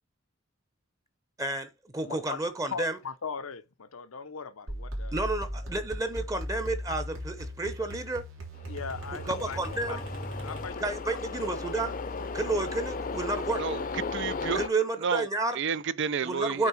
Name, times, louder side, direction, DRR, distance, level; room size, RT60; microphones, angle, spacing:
voice 1, 1.4-3.0 5.1-8.2 9.2-10.0 10.8-11.9 12.3-13.6 14.5-15.6 16.2-16.7, right 2 dB, 15° right, 0.9 m, -31 dB
voice 2, 2.0-2.4 2.7-5.2 8.7-10.0 10.4-10.9 11.5-11.6 12.4-12.7, left 5 dB, 90° left, 0.8 m, -39 dB
sound 1, 4.7-11.0, equal, 75° right, 3.3 m, -38 dB
sound 2, 8.5-14.7, left 4 dB, 40° left, 0.7 m, -36 dB
voice 3, 13.6-14.6 15.0-15.3 15.5-16.7, right 6 dB, 60° right, 0.5 m, -31 dB
8.7 x 3.6 x 5.8 m
head